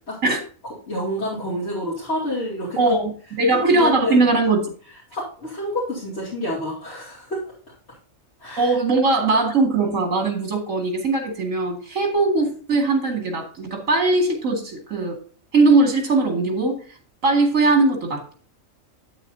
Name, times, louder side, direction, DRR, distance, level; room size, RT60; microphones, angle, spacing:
voice 1, 0.9-2.8 3.5-4.3 5.1-7.4 8.4-8.7, equal, 55° left, -7 dB, 3.0 m, -28 dB
voice 2, 2.8-3.1 3.4-4.7 8.6-15.2 15.5-16.8 17.2-18.3, right 3 dB, 75° right, 3 dB, 2.5 m, -20 dB
9.0 x 8.3 x 2.7 m, 0.42 s
omnidirectional pair, 1.4 m